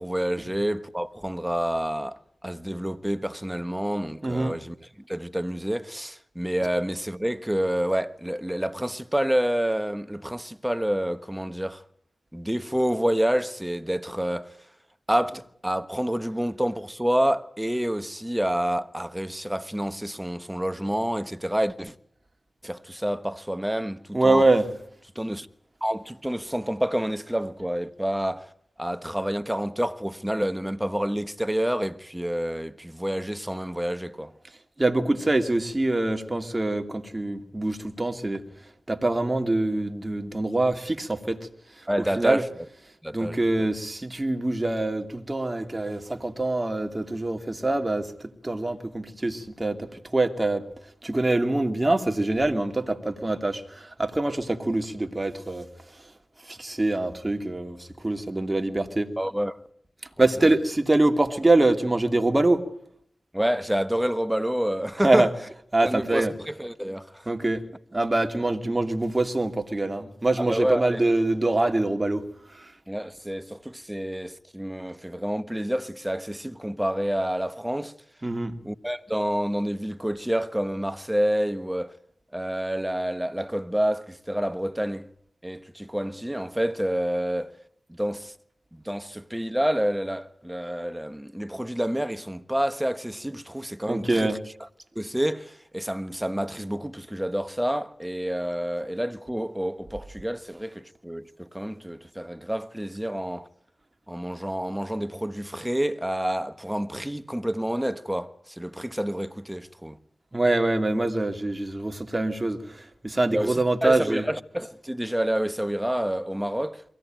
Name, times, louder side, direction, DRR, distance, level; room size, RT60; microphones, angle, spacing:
voice 1, 0.0-11.8 12.3-14.6 15.1-21.9 22.6-24.4 25.1-25.5 25.8-28.5 28.8-34.3 41.9-42.5 43.0-43.7 59.2-59.6 63.3-65.3 65.8-67.3 70.4-71.0 72.9-77.9 78.6-82.0 82.3-85.0 85.4-87.5 87.9-88.3 88.7-94.4 94.9-103.5 104.1-110.0 113.3-116.8, equal, 10° right, 1.3 m, -28 dB
voice 2, 4.2-4.5 24.1-24.7 34.8-38.4 38.9-41.4 42.2-42.4 43.1-48.1 48.4-50.6 51.0-55.7 56.5-59.1 60.2-62.6 65.0-65.3 65.7-66.3 67.3-67.6 67.9-72.2 72.5-72.6 78.2-78.6 93.9-94.4 110.3-112.8 113.0-114.3, right 2 dB, 30° right, 2.5 m, -24 dB
23.5 x 16.5 x 9.0 m
cardioid pair, 40°, 0 cm